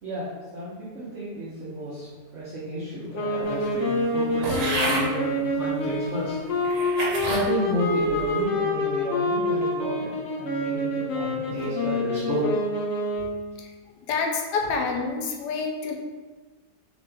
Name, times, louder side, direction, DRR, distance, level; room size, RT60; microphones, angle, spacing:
voice 1, 0.0-6.9 7.2-12.5, right 1 dB, 55° right, -10 dB, 1.0 m, -32 dB
sound 1, 3.1-13.5, left 1 dB, 70° left, 0.7 m, -27 dB
sound 2, 4.4-5.1 5.9-6.0 6.6-7.5 8.0-8.4, right 2 dB, 85° right, 1.3 m, -29 dB
voice 2, 14.1-15.9, left 4 dB, 85° left, 1 dB, 1.2 m, -27 dB
3.0 x 2.9 x 3.4 m, 1.3 s
omnidirectional pair, 1.7 m